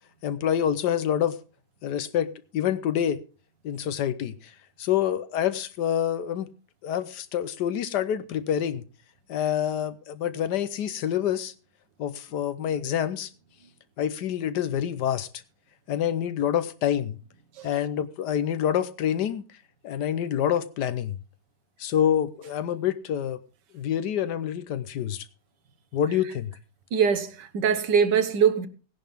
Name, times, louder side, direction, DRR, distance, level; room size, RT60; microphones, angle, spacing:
voice 1, 0.2-1.4 1.8-3.2 3.6-4.5 4.8-6.5 6.8-8.8 9.3-11.5 12.0-13.3 14.0-15.3 15.9-17.2 17.6-19.4 19.8-21.2 21.8-23.4 23.7-25.3 25.9-26.5, left 9 dB, 80° left, 1.4 m, -27 dB
voice 2, 26.9-28.7, right 7 dB, 90° right, 1.7 m, -22 dB
16.5 x 10.5 x 3.6 m
omnidirectional pair, 1.8 m